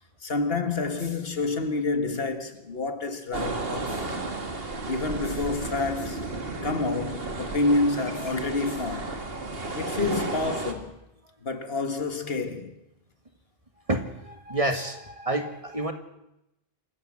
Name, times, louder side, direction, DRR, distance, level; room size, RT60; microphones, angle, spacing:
voice 1, 0.2-4.2 4.9-6.3 6.6-9.2 9.7-11.0 11.4-12.7, left 3 dB, 70° left, 1.9 m, -28 dB
sound 1, 3.3-10.7, right 3 dB, 70° right, 2.3 m, -33 dB
voice 2, 13.9-15.9, right 1 dB, 35° right, 1.9 m, -29 dB
26.5 x 14.5 x 7.5 m
omnidirectional pair, 1.0 m